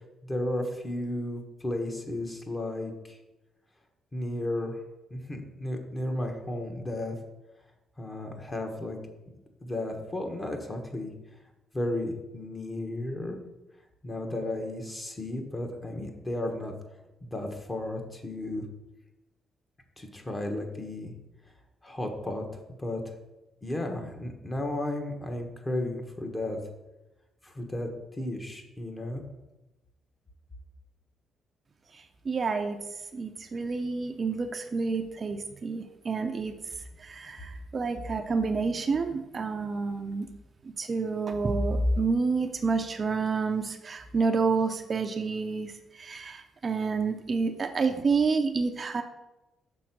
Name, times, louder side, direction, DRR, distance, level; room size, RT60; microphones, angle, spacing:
voice 1, 0.2-3.2 4.1-4.8 5.1-7.2 8.0-9.0 9.6-11.1 11.7-13.4 14.0-16.7 17.2-18.6 20.0-21.1 21.8-23.0 23.6-26.6 27.4-29.2, left 1 dB, 20° left, 4 dB, 1.2 m, -34 dB
voice 2, 31.9-32.8 33.1-36.5 37.0-40.3 40.6-49.0, right 4 dB, 40° right, 6 dB, 0.5 m, -29 dB
6.3 x 3.8 x 5.9 m, 1.0 s
cardioid pair, 90°, 0 cm